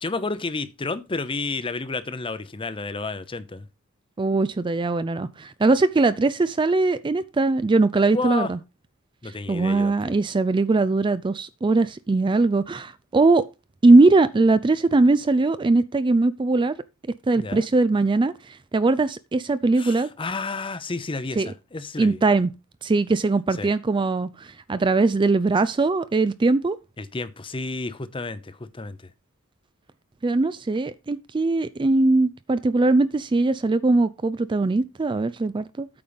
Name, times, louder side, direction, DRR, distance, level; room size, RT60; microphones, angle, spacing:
voice 1, 0.0-3.7 8.1-8.5 9.2-10.2 17.4-17.7 19.8-22.2 23.6-23.7 27.0-29.1, left 3 dB, 25° left, 0.7 m, -31 dB
voice 2, 4.2-8.6 9.2-13.4 13.8-16.7 17.3-20.1 21.4-21.5 22.0-22.5 22.8-26.8 30.2-35.9, right 3 dB, 20° right, 0.4 m, -21 dB
8.7 x 5.5 x 5.2 m
head